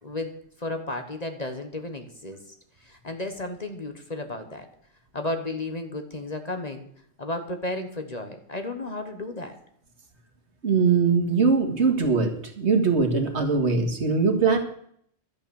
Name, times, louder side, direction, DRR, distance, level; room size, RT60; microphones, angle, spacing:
voice 1, 0.0-2.5 2.8-4.7 5.1-6.9 7.2-9.6 12.0-12.1, left 2 dB, 35° left, 6 dB, 1.3 m, -33 dB
voice 2, 10.6-12.3 12.6-14.6, right 5 dB, 65° right, 4 dB, 2.1 m, -21 dB
12.0 x 8.9 x 7.1 m, 0.66 s
omnidirectional pair, 1.3 m